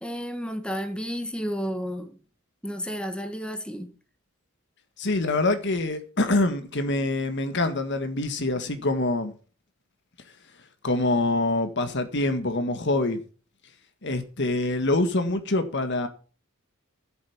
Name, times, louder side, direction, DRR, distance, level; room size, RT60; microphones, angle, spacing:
voice 1, 0.0-2.2 2.6-3.9, equal, 5° left, 1.4 m, -32 dB
voice 2, 5.0-9.3 10.8-13.2 14.0-16.1, left 2 dB, 55° left, 1.7 m, -25 dB
12.0 x 7.9 x 7.2 m
head